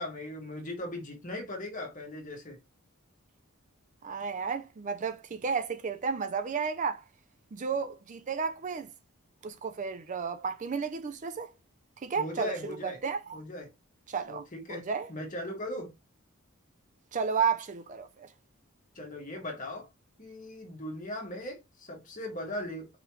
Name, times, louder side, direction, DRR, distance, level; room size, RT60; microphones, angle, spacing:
voice 1, 0.0-2.6 12.2-13.0 13.3-13.7 14.3-15.9 18.9-19.9 20.2-22.9, left 1 dB, 35° left, 1.6 m, -38 dB
voice 2, 4.0-7.0 7.5-8.9 9.4-11.5 12.0-13.4 14.1-15.1 17.1-18.3, right 5 dB, 35° right, 0.4 m, -32 dB
4.8 x 3.2 x 3.0 m
head